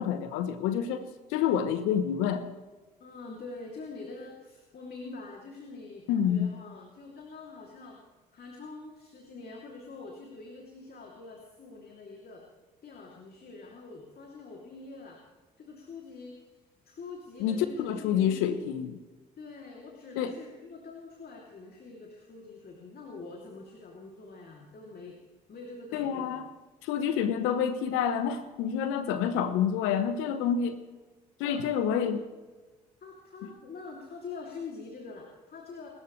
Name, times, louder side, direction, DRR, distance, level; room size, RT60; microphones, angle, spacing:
voice 1, 0.0-2.4 6.1-6.5 17.4-19.0 20.2-20.3 25.9-26.5 26.8-30.8 31.4-32.3, left 8 dB, 75° left, 11 dB, 1.1 m, -28 dB
voice 2, 3.0-8.0 8.3-12.4 12.8-15.2 15.6-16.4 16.8-18.6 19.4-25.2 25.5-26.4 31.4-31.6 32.0-32.2 33.0-35.9, left 3 dB, 50° left, 0 dB, 3.0 m, -45 dB
26.5 x 13.5 x 3.3 m, 1.2 s
hypercardioid pair, 50°, 21 cm